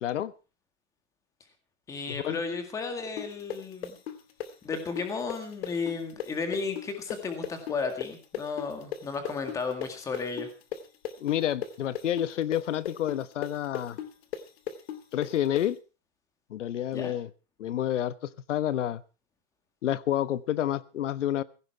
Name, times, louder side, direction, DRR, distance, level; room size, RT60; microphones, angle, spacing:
voice 1, 0.0-0.3 2.1-2.4 11.2-14.0 15.1-15.8 16.5-17.3 17.6-19.0 19.8-21.4, left 11 dB, 85° left, 16 dB, 1.2 m, -29 dB
voice 2, 1.9-4.0 4.6-10.5 16.9-17.2, left 4 dB, 10° left, 7 dB, 1.9 m, -33 dB
sound 1, 3.2-10.8 11.0-15.6, left 10 dB, 55° left, 2.3 m, -36 dB
16.5 x 15.5 x 4.6 m, 0.34 s
supercardioid pair, 175°, 36 cm